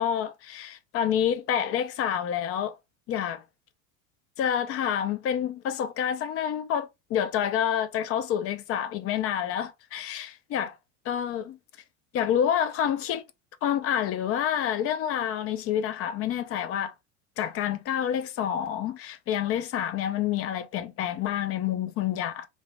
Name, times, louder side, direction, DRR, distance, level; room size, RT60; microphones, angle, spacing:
voice 1, 0.0-2.7 3.1-3.4 4.4-10.7 11.1-11.6 12.1-13.2 13.6-16.9 17.4-22.5, left 9 dB, 40° left, 0.5 m, -28 dB
2.6 x 2.0 x 3.2 m
hypercardioid pair, 100°, 37 cm